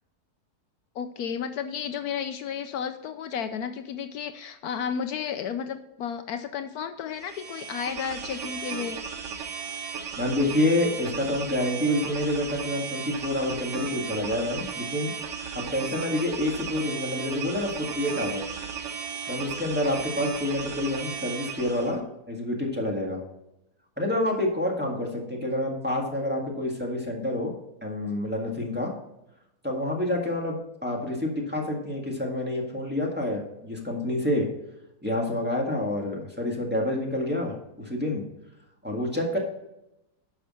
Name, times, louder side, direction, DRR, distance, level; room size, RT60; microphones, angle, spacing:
voice 1, 0.9-9.0, left 7 dB, 75° left, 8 dB, 1.1 m, -32 dB
sound 1, 7.2-22.0, right 6 dB, 55° right, 1.1 m, -35 dB
voice 2, 10.2-15.1 15.7-18.4 19.3-22.0 22.3-23.2 24.0-27.5 27.8-28.9 29.6-34.5 35.0-38.2 38.8-39.4, left 1 dB, 5° right, -1 dB, 1.7 m, -28 dB
9.9 x 6.3 x 4.3 m, 0.88 s
omnidirectional pair, 1.7 m